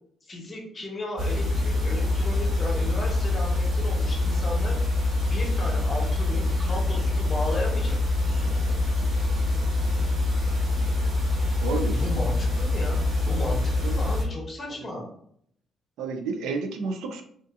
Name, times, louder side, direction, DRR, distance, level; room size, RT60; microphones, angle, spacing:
voice 1, 0.2-4.8 5.2-8.8 11.9-15.1, left 1 dB, 35° left, -1 dB, 0.9 m, -35 dB
sound 1, 1.2-14.2, left 2 dB, 55° right, 1.1 m, -25 dB
voice 2, 11.6-12.0 13.8-14.0 14.8-14.9 16.0-17.2, right 4 dB, 90° right, 5 dB, 0.4 m, -30 dB
2.6 x 2.4 x 2.3 m, 0.65 s
cardioid pair, 90°, 0 cm